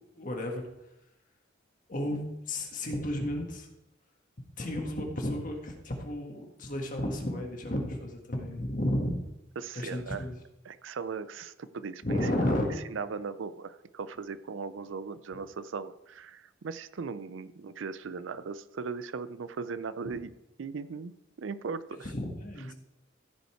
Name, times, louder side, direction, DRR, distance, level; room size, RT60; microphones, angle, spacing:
voice 1, 0.1-0.6 1.9-2.2 2.5-3.7 4.6-9.2 9.8-10.4 12.0-12.6 20.0-20.2 22.0-22.7, left 1 dB, 40° left, 2 dB, 1.7 m, -32 dB
voice 2, 9.6-10.2 10.6-12.6 12.9-20.3 20.6-21.1 21.4-22.1, right 5 dB, 80° right, 14 dB, 0.5 m, -38 dB
15.0 x 5.6 x 4.5 m, 0.90 s
head